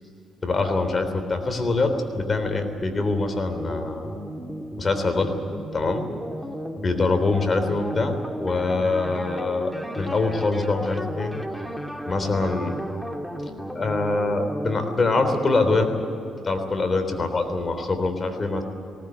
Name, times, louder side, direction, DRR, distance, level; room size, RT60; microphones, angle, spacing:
voice 1, 0.4-4.2 4.8-5.4 5.7-6.1 6.8-11.3 12.1-12.8 13.7-15.9 16.4-18.6, left 3 dB, 35° left, 7 dB, 3.5 m, -24 dB
sound 1, 3.5-16.2, equal, ahead, 1.9 m, -34 dB
19.0 x 18.5 x 9.4 m, 2.8 s
cardioid pair, 90°, 0 cm